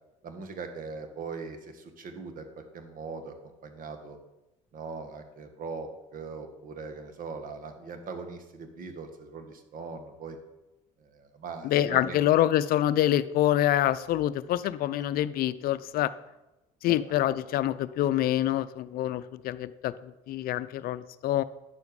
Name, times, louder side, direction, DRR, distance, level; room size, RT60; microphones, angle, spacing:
voice 1, 0.2-3.4 3.6-4.2 4.7-10.4 11.0-12.2 16.9-17.0, right 4 dB, 55° right, 6 dB, 1.6 m, -40 dB
voice 2, 11.6-16.1 16.8-21.4, left 13 dB, 60° left, 15 dB, 0.5 m, -26 dB
9.7 x 7.0 x 4.8 m, 0.99 s
supercardioid pair, 80°, 17 cm